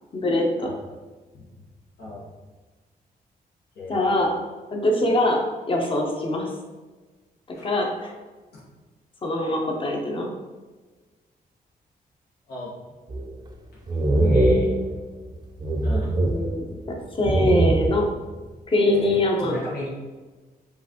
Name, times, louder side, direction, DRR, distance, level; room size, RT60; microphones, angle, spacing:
voice 1, 0.1-0.7 3.9-4.3 4.8-5.4 5.7-6.5 7.6-8.1 9.2-10.3 16.2-18.1 18.7-19.6, left 1 dB, 35° left, 1 dB, 0.8 m, -23 dB
voice 2, 2.0-2.3 3.7-4.2 7.5-7.7 8.5-8.7 12.5-12.7 14.2-14.7 15.8-16.1 18.8-19.9, left 2 dB, 80° left, -8 dB, 1.2 m, -36 dB
sound 1, 13.1-13.5 13.9-15.3 15.6-16.9 17.2-18.2, right 2 dB, 25° right, 0.6 m, -22 dB
5.6 x 2.5 x 2.8 m, 1.3 s
cardioid pair, 110°, 16 cm